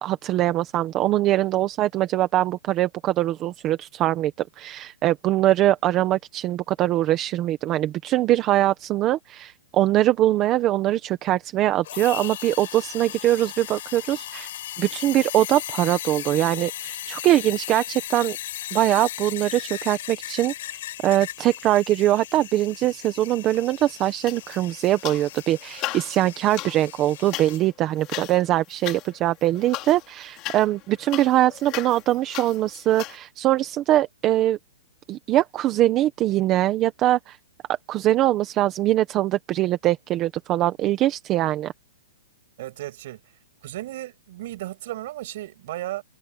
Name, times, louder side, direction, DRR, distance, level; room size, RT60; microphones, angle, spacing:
voice 1, 0.0-14.5 14.8-18.4 18.7-34.6 35.1-37.4 37.9-41.7, right 14 dB, 20° right, 1.0 m, -22 dB
sound 1, 11.8-27.6, left 13 dB, 45° left, 6.9 m, -37 dB
sound 2, 24.2-25.4 25.7-33.2, left 18 dB, 25° left, 3.6 m, -36 dB
voice 2, 42.6-43.2 43.6-46.0, right 15 dB, 40° right, 7.0 m, -34 dB
hypercardioid pair, 170°, 0 cm